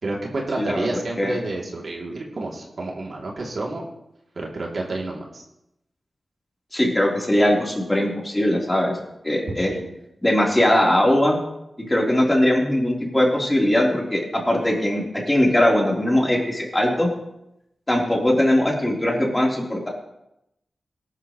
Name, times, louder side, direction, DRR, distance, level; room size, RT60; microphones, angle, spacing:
voice 1, 0.0-3.8 4.3-5.4 9.5-10.0, right 2 dB, 60° right, -2 dB, 2.9 m, -29 dB
voice 2, 0.6-0.9 1.2-1.4 6.7-8.9 9.2-9.7 10.2-11.4 11.9-17.1 17.9-19.9, left 1 dB, 15° left, -2 dB, 3.7 m, -20 dB
18.5 x 12.0 x 3.2 m, 0.85 s
wide cardioid pair, 90°, 0 cm